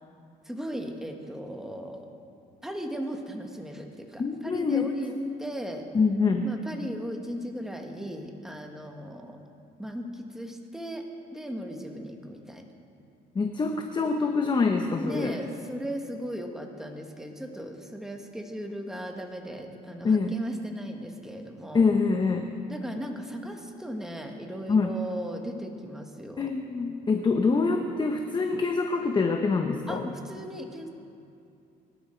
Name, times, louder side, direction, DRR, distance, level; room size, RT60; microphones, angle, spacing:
voice 1, 0.4-2.1 2.6-5.1 5.4-5.8 6.4-9.4 9.8-12.7 15.0-21.9 22.7-26.5 29.9-30.9, equal, 5° right, 2 dB, 1.7 m, -37 dB
voice 2, 4.2-4.9 5.9-6.5 13.3-15.3 20.0-20.3 21.7-22.5 24.7-24.9 26.4-30.1, left 4 dB, 25° left, 4 dB, 1.0 m, -25 dB
24.0 x 11.5 x 4.6 m, 2.5 s
cardioid pair, 110°, 17 cm